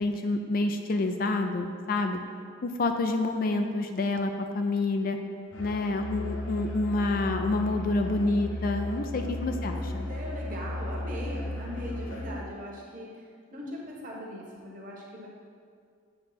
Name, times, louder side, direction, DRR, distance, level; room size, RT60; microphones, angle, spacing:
voice 1, 0.0-2.2 2.6-5.2 5.6-10.1, left 2 dB, 45° left, 6 dB, 0.4 m, -28 dB
Musical instrument, 5.5-12.4, left 1 dB, 75° left, 1.1 m, -35 dB
voice 2, 10.0-13.1 13.5-15.3, equal, 40° right, -3 dB, 1.1 m, -39 dB
7.9 x 3.2 x 5.7 m, 2.2 s
head